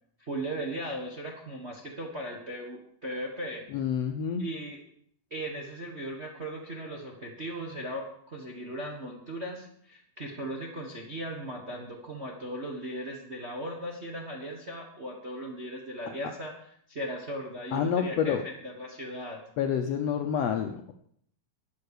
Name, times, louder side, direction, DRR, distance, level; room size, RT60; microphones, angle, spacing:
voice 1, 0.2-3.6 4.4-4.8 5.3-16.5 16.9-19.4, right 1 dB, 35° right, 0 dB, 1.0 m, -37 dB
voice 2, 3.7-4.4 17.7-18.4 19.6-20.9, left 8 dB, 75° left, 6 dB, 1.5 m, -28 dB
12.5 x 9.2 x 6.6 m, 0.66 s
omnidirectional pair, 3.6 m